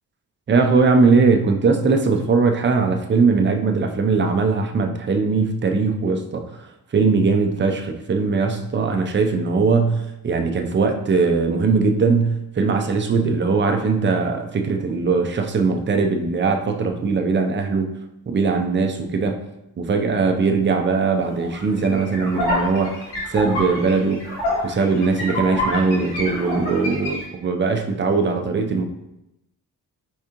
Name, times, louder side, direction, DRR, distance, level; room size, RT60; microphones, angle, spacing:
voice 1, 0.5-6.5 6.9-17.9 18.3-19.4 19.8-23.0 23.3-24.2 24.6-28.8, right 4 dB, 30° right, 5 dB, 0.5 m, -20 dB
sound 1, 21.2-27.2, left 1 dB, 80° left, 1.7 m, -27 dB
4.7 x 3.6 x 2.9 m, 0.87 s
cardioid pair, 65°, 39 cm